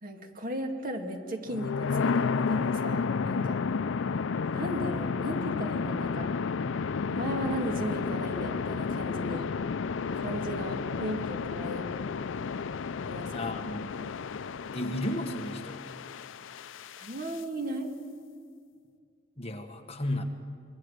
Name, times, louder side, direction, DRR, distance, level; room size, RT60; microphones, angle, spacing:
voice 1, 0.0-3.6 4.5-6.3 7.1-9.5 10.1-11.9 13.0-13.4 13.9-14.1 17.0-17.9, right 1 dB, 45° right, 3 dB, 2.2 m, -36 dB
sound 1, 1.5-17.4, left 5 dB, 85° left, 0.5 m, -32 dB
voice 2, 13.3-13.9 14.7-15.8 19.4-20.2, left 1 dB, 35° left, 4 dB, 1.6 m, -33 dB
24.5 x 22.0 x 6.6 m, 2.1 s
head